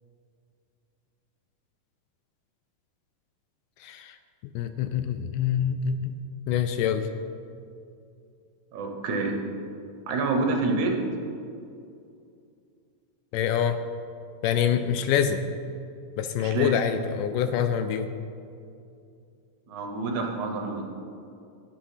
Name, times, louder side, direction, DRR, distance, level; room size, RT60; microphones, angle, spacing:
voice 1, 3.8-4.2 4.6-6.1 6.5-7.1 13.3-13.8 14.4-15.4 16.2-18.1, left 8 dB, 80° left, 9 dB, 2.0 m, -25 dB
voice 2, 8.7-9.4 10.1-11.0 16.4-16.8 19.7-20.8, right 3 dB, 70° right, 3 dB, 2.1 m, -27 dB
10.5 x 8.5 x 5.6 m, 2.5 s
omnidirectional pair, 4.0 m